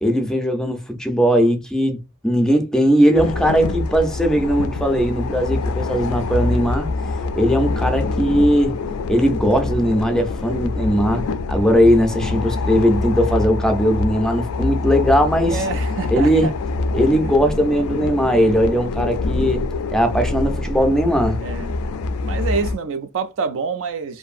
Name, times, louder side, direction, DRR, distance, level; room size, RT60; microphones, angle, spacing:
voice 1, 0.0-6.9 7.4-8.8 9.1-11.2 11.5-15.6 16.1-16.5 16.9-19.6 19.9-21.4, equal, 5° left, 0.4 m, -18 dB
sound 1, 3.1-22.8, left 3 dB, 75° left, 0.3 m, -25 dB
voice 2, 15.5-16.5 21.4-21.7 22.2-24.2, right 5 dB, 60° right, 0.4 m, -26 dB
2.6 x 2.5 x 2.4 m
head